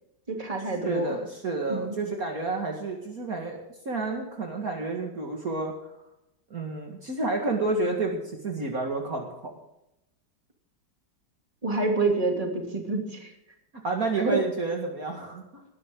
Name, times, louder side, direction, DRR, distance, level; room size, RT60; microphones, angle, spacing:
voice 1, 0.3-1.2 1.7-2.0 11.6-13.3 14.3-14.4, right 3 dB, 20° right, 1 dB, 3.0 m, -27 dB
voice 2, 0.8-3.6 3.9-5.9 6.5-9.5 13.8-15.6, right 3 dB, 50° right, 1 dB, 2.4 m, -30 dB
20.0 x 12.0 x 3.8 m, 0.84 s
omnidirectional pair, 2.1 m